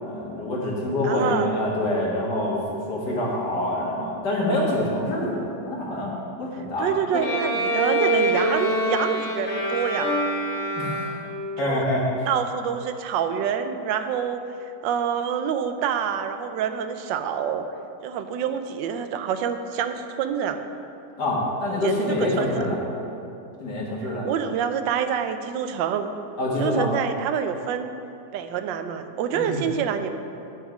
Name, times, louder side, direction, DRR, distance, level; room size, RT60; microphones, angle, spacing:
voice 1, 0.0-2.6 2.9-6.1 6.4-6.9 10.8-11.2 11.6-12.0 21.2-22.8 23.6-24.3 26.4-26.9 29.3-29.6, left 1 dB, 65° left, -4 dB, 2.2 m, -26 dB
voice 2, 1.0-1.5 6.8-10.1 11.6-11.8 12.3-17.7 18.0-20.6 21.8-21.9 22.2-22.6 24.2-26.1 26.6-27.9 28.3-30.1, right 8 dB, 90° right, 8 dB, 1.3 m, -27 dB
Bowed string instrument, 7.1-11.6, equal, 50° left, 1.1 m, -25 dB
9.2 x 6.2 x 5.0 m, 2.7 s
omnidirectional pair, 1.9 m